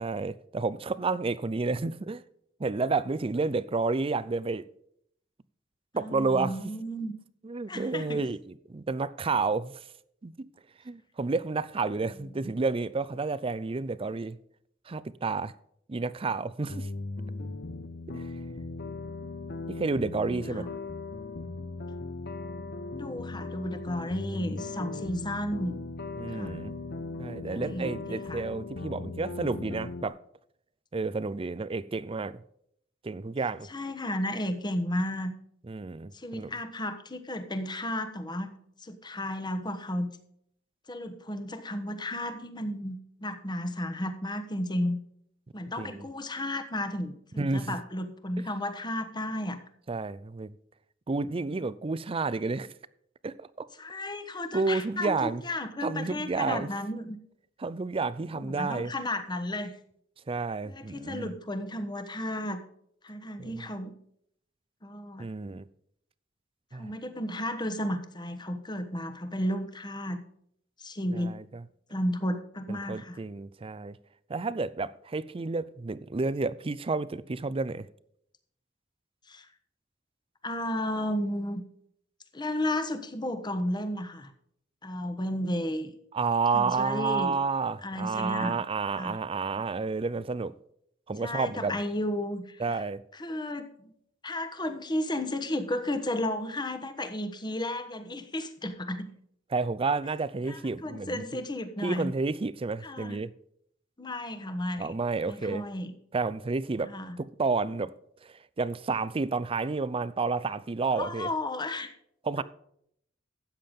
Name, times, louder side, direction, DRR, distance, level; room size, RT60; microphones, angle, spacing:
voice 1, 0.0-2.2 2.6-4.6 5.9-6.7 7.4-8.4 8.7-9.8 10.2-10.3 10.8-14.4 14.9-15.5 15.9-16.9 18.1-18.3 19.8-20.7 25.0-25.1 26.2-26.7 27.2-30.2 30.9-32.4 33.0-33.7 35.7-36.5 45.8-46.0 47.4-47.8 49.9-50.5 51.1-52.7 53.2-53.7 54.5-55.4 55.8-56.7 57.6-58.9 60.3-61.3 63.4-63.6 65.2-65.7 66.7-66.9 71.1-71.6 72.7-74.0 74.3-77.9 86.1-90.5 91.1-91.8 92.6-93.0 99.5-101.2 101.8-103.3 104.8-105.6 106.1-106.9 107.2-107.9 108.2-111.3 112.2-112.4, right 4 dB, 30° right, 0.5 m, -30 dB
voice 2, 5.9-7.1 7.7-8.3 12.1-12.5 20.3-20.7 22.9-25.8 26.3-26.6 27.5-28.4 33.7-35.3 36.1-40.1 40.9-45.0 45.5-49.6 53.8-57.2 58.3-59.7 60.6-62.6 63.0-63.9 64.8-65.3 66.7-70.2 70.8-71.3 71.9-73.2 79.3-79.5 80.4-81.6 82.3-84.3 84.8-85.9 86.5-87.3 87.8-88.6 88.9-89.2 91.2-92.8 93.1-93.9 94.2-99.1 100.5-102.1 102.8-103.2 104.0-104.9 105.3-105.9 106.8-107.2 111.0-111.9 112.4-112.5, left 1 dB, 25° left, 1.1 m, -33 dB
sound 1, 16.7-30.1, left 3 dB, 55° left, 0.9 m, -38 dB
13.0 x 8.7 x 3.7 m
head